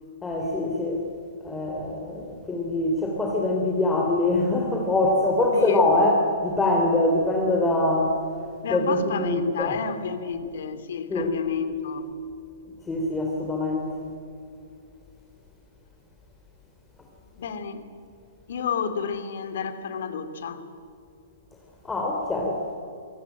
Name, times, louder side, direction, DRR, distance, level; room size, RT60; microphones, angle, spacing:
voice 1, 0.2-1.0 1.4-8.2 8.7-9.7 11.1-11.3 12.9-13.9 21.8-22.6, left 2 dB, 10° left, -1 dB, 3.3 m, -23 dB
voice 2, 5.5-5.8 8.6-12.1 17.3-17.9 18.5-20.6, left 6 dB, 65° left, 10 dB, 2.6 m, -30 dB
24.0 x 16.5 x 9.2 m, 2.6 s
hypercardioid pair, 120°, 0 cm